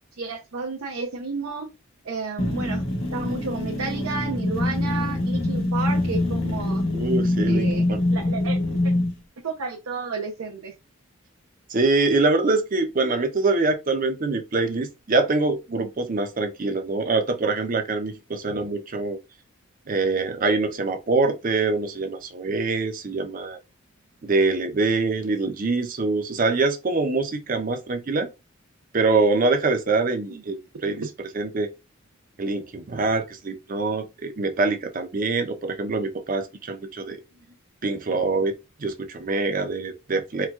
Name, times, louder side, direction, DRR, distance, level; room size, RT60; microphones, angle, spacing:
voice 1, 0.2-1.7 2.0-2.9 3.1-6.8 7.4-7.8 8.1-8.6 8.8-8.9 9.4-10.7 30.3-30.4, right 4 dB, 85° right, 0.7 m, -31 dB
sound 1, 2.4-9.1, left 1 dB, 75° left, 1.0 m, -24 dB
voice 2, 6.9-8.0 11.7-19.2 19.9-23.6 24.2-28.3 28.9-30.6 30.8-31.0 31.3-31.7 32.4-37.2 37.8-38.5 38.8-40.5, right 3 dB, 40° right, 0.5 m, -24 dB
4.4 x 2.3 x 2.3 m
head